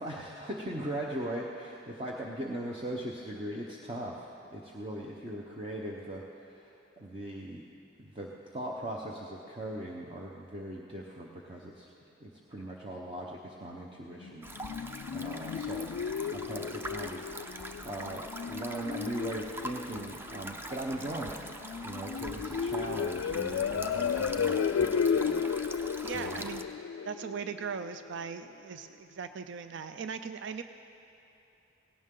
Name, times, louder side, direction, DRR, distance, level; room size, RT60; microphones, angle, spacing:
voice 1, 0.0-7.6 8.0-11.9 12.2-14.5 15.1-17.6 17.8-21.4 21.8-25.4 26.0-26.4, right 1 dB, 30° right, -3 dB, 0.9 m, -39 dB
sound 1, 14.2-28.2, left 7 dB, 90° left, 0.3 m, -34 dB
sound 2, 14.4-26.6, right 1 dB, 10° right, 0.5 m, -43 dB
voice 2, 26.0-26.6 27.0-30.6, right 6 dB, 65° right, 9 dB, 0.4 m, -39 dB
17.5 x 17.0 x 3.8 m, 2.9 s
head